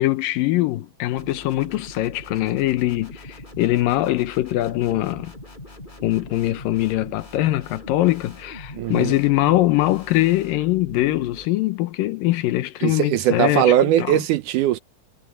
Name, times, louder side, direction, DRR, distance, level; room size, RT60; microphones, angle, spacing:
voice 1, 0.0-5.3 6.0-14.1, left 16 dB, 85° left, 2.6 m, -22 dB
sound 1, 1.2-11.5, left 1 dB, 15° left, 3.9 m, -41 dB
voice 2, 8.7-9.2 12.8-14.8, right 12 dB, 75° right, 2.1 m, -20 dB
omnidirectional pair, 4.0 m